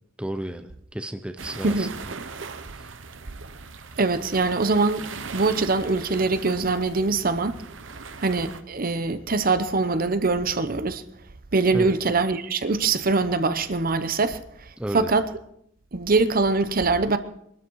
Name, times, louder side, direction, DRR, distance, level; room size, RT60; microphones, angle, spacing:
voice 1, 0.2-1.9 11.7-11.9 14.8-15.1, right 1 dB, 5° right, 0.7 m, -32 dB
sound 1, 1.4-8.6, right 5 dB, 75° right, 1.0 m, -40 dB
voice 2, 1.6-2.0 4.0-5.0 5.3-7.6 8.2-11.0 11.5-14.4 14.9-15.2 15.9-17.2, right 3 dB, 50° right, 0.9 m, -23 dB
22.5 x 13.0 x 4.7 m
head